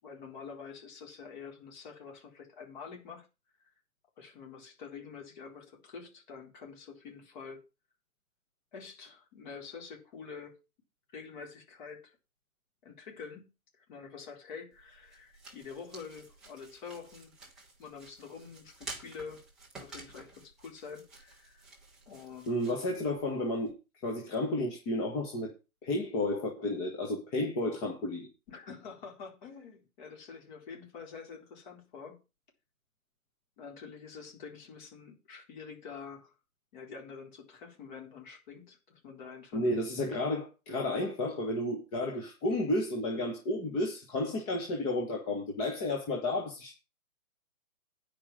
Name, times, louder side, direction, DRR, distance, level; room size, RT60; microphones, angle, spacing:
voice 1, 0.0-3.3 3.6-3.7 4.2-7.6 8.7-10.6 11.1-12.2 12.8-13.5 13.8-17.3 17.8-19.4 19.8-21.6 22.1-22.7 28.5-32.2 33.6-36.4 36.7-39.7, left 5 dB, 30° left, 4.1 m, -47 dB
sound 1, 14.7-23.7, right 3 dB, ahead, 0.7 m, -51 dB
voice 2, 22.5-23.7 24.0-25.5 25.8-28.3 39.5-46.7, left 1 dB, 15° left, 1.3 m, -32 dB
10.0 x 5.2 x 7.4 m
hypercardioid pair, 160°, 43 cm